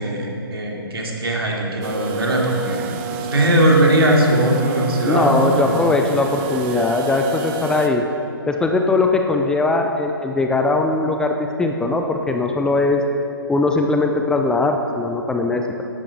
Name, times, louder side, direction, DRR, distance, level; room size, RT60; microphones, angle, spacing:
voice 1, 0.0-5.8, right 1 dB, 70° right, -1 dB, 3.0 m, -19 dB
sound 1, 1.8-7.9, right 4 dB, 25° right, 0.8 m, -29 dB
voice 2, 5.0-8.1 8.5-13.0 13.5-15.8, left 3 dB, 5° left, 3 dB, 0.5 m, -20 dB
13.5 x 11.5 x 5.0 m, 2.7 s
figure-of-eight pair, 130°, 13 cm